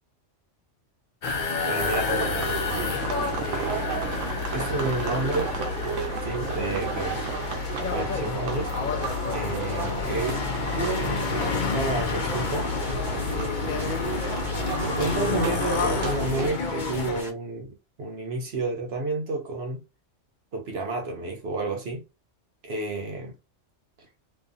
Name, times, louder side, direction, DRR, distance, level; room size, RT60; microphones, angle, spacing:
sound 1, 1.2-17.2, left 4 dB, 50° left, 0.7 m, -30 dB
voice 1, 1.6-2.5 2.8-3.0 3.2-3.9 4.5-5.5 6.2-7.2 7.9-8.7 9.3-10.4 10.7-12.7 13.3-14.0 14.9-19.8 20.5-22.0 22.6-23.3, right 3 dB, 60° right, 0.9 m, -31 dB
sound 2, 1.8-16.5, right 1 dB, 85° right, 1.0 m, -31 dB
sound 3, 9.3-17.3, equal, ahead, 0.7 m, -43 dB
2.7 x 2.5 x 2.4 m
omnidirectional pair, 1.3 m